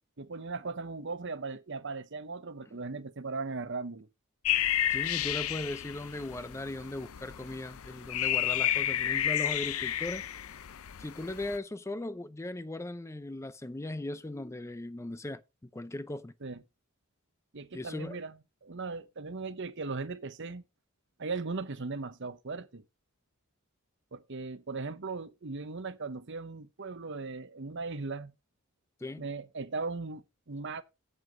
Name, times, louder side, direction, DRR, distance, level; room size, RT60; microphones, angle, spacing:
voice 1, 0.2-4.1 16.4-16.6 17.5-18.3 18.6-20.6 21.2-22.8 24.1-28.3 29.2-30.8, right 3 dB, 60° right, 0.9 m, -38 dB
sound 1, 4.5-11.6, left 11 dB, 80° left, 0.5 m, -31 dB
voice 2, 4.9-10.2 11.0-16.3 17.7-18.2 29.0-29.3, left 1 dB, 15° left, 0.5 m, -38 dB
7.9 x 7.8 x 5.1 m
head